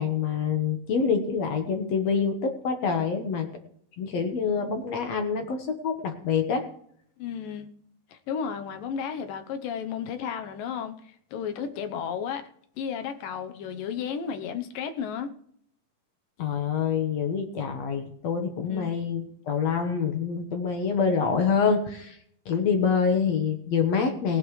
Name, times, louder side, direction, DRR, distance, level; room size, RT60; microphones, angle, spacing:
voice 1, 0.0-3.5 4.0-6.6 16.4-22.2 22.5-24.4, left 6 dB, 60° left, 2.1 m, -26 dB
voice 2, 7.2-7.7 8.1-10.9 11.3-12.4 12.8-15.3 18.7-18.9, left 7 dB, 75° left, 2.6 m, -33 dB
19.5 x 11.0 x 3.2 m
omnidirectional pair, 4.2 m